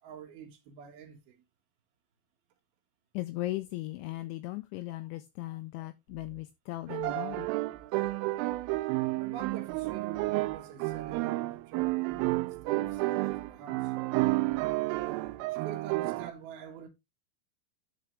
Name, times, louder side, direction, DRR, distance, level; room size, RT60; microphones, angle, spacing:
voice 1, 0.0-1.4 9.2-13.9 15.5-16.9, right 8 dB, 60° right, 2.9 m, -46 dB
voice 2, 3.1-7.5, left 17 dB, 85° left, 2.6 m, -37 dB
sound 1, 6.1-15.5, right 7 dB, 40° left, 5.9 m, -56 dB
sound 2, 6.9-16.3, right 20 dB, 85° right, 3.1 m, -31 dB
11.5 x 5.8 x 3.3 m
omnidirectional pair, 5.9 m